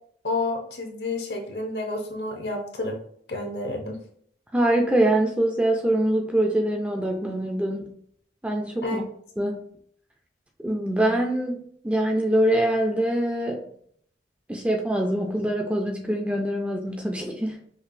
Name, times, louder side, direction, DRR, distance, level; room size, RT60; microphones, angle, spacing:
voice 1, 0.2-3.0 3.3-4.0 8.8-9.0, left 2 dB, 65° left, 2 dB, 0.8 m, -30 dB
voice 2, 4.5-7.9 8.4-9.0 9.4-9.6 10.6-13.6 14.5-17.6, right 1 dB, 5° right, 1 dB, 0.3 m, -24 dB
5.1 x 2.4 x 2.5 m, 0.63 s
head